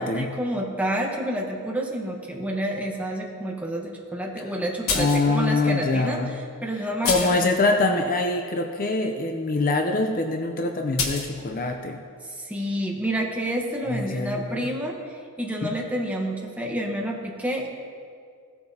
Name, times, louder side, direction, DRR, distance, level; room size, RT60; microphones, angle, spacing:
voice 1, 0.0-6.2 6.6-7.5 12.2-17.7, right 1 dB, 5° right, -1 dB, 1.1 m, -29 dB
sound 1, 4.9-5.3 6.1-6.2 7.1-7.5 11.0-11.3, left 4 dB, 65° left, 1.2 m, -26 dB
voice 2, 4.9-6.3 6.8-12.0 13.9-14.7 15.6-15.7, left 2 dB, 40° left, 4 dB, 0.6 m, -24 dB
16.5 x 8.7 x 2.8 m, 2.2 s
head